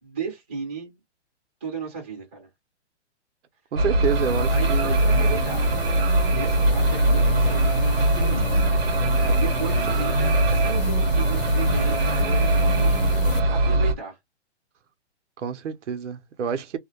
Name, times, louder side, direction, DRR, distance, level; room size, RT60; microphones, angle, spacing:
voice 1, 0.0-1.0 1.6-2.5 4.5-5.7 6.2-8.5 9.2-13.0 13.5-14.2, right 5 dB, 10° right, 0.6 m, -35 dB
voice 2, 3.7-5.0 9.9-10.0 15.4-16.8, right 7 dB, 90° right, 0.7 m, -28 dB
sound 1, 3.8-13.9, right 1 dB, 55° right, 0.7 m, -21 dB
sound 2, 4.0-13.4, left 5 dB, 50° left, 0.6 m, -33 dB
2.3 x 2.1 x 2.7 m
hypercardioid pair, 175°, 35 cm